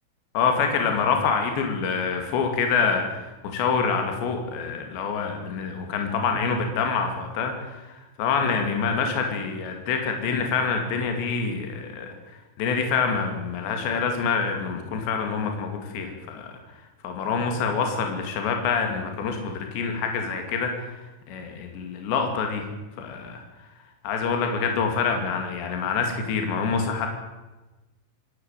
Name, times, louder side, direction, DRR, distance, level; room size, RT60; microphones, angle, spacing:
voice 1, 0.3-12.1 12.6-16.5 17.0-21.0 21.3-22.7 23.0-23.4 24.0-27.1, left 5 dB, 65° left, 4 dB, 4.6 m, -26 dB
27.5 x 12.5 x 9.0 m, 1.1 s
omnidirectional pair, 5.5 m